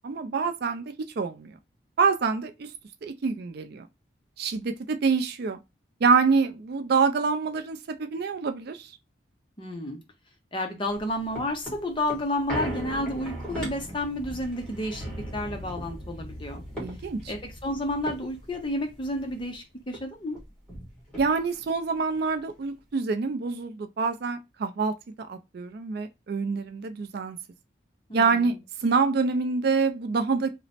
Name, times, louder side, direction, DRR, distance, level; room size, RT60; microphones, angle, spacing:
voice 1, 0.0-1.6 2.0-2.7 3.0-3.9 4.4-5.6 6.0-8.9 16.8-17.3 21.2-27.4 28.1-28.6 28.8-30.5, right 5 dB, 50° right, 0.4 m, -26 dB
voice 2, 9.6-10.0 10.5-16.6 17.3-20.4 28.1-28.5, left 1 dB, 25° left, 0.6 m, -31 dB
sound 1, 10.9-19.6 19.9-20.0 20.3-21.7 22.1-22.2, equal, 5° left, 1.3 m, -38 dB
3.0 x 2.0 x 4.0 m
head